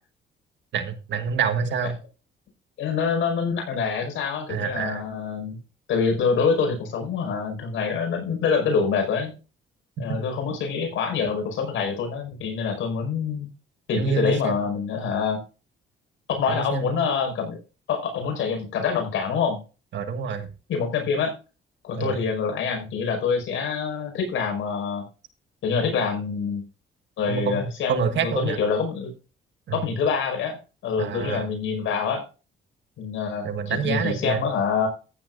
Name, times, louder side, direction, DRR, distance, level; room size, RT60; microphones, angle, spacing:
voice 1, 0.7-2.0 4.5-5.0 13.9-14.6 16.5-17.1 19.9-20.5 22.0-22.2 27.3-28.6 29.7-29.8 31.0-31.5 33.4-34.4, right 6 dB, 65° right, 9 dB, 1.6 m, -27 dB
voice 2, 2.8-5.6 5.9-9.3 10.0-13.5 13.9-15.4 16.3-17.6 17.9-19.6 20.7-21.3 21.8-25.0 25.6-26.6 27.2-29.1 29.7-32.2 33.0-34.9, left 5 dB, 80° left, 4 dB, 5.3 m, -26 dB
14.5 x 10.0 x 2.6 m, 0.33 s
cardioid pair, 90°, 20 cm